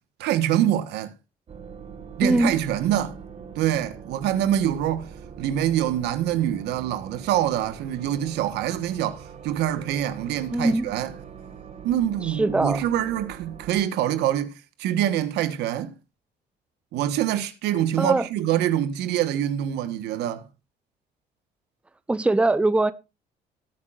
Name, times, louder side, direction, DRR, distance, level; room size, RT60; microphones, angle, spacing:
voice 1, 0.2-1.1 2.2-3.1 3.6-5.1 5.4-11.1 11.8-15.9 16.9-20.5, right 11 dB, 85° right, 1.2 m, -25 dB
sound 1, 1.5-13.8, right 7 dB, 40° right, 1.8 m, -42 dB
voice 2, 2.2-2.5 10.5-10.8 12.2-12.8 18.0-18.3 22.1-22.9, right 2 dB, 5° right, 0.6 m, -21 dB
18.5 x 8.7 x 2.4 m
cardioid pair, 110°, 17 cm